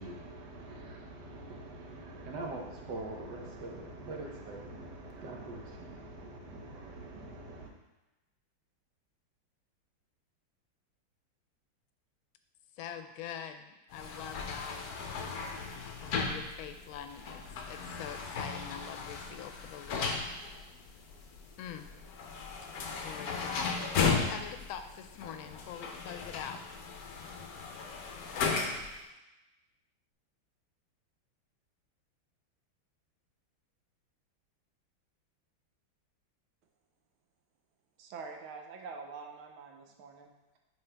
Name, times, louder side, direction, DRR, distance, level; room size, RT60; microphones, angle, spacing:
voice 1, 0.0-7.7, right 2 dB, 65° right, 1 dB, 1.4 m, -43 dB
voice 2, 12.8-14.8 16.0-20.3 21.6-21.9 23.0-26.6, left 8 dB, 80° left, 8 dB, 1.4 m, -44 dB
sound 1, 13.9-29.0, left 5 dB, 60° left, 1.0 m, -36 dB
voice 3, 38.0-40.6, right 4 dB, 85° right, 3 dB, 1.6 m, -46 dB
8.9 x 3.7 x 3.3 m, 1.0 s
omnidirectional pair, 2.2 m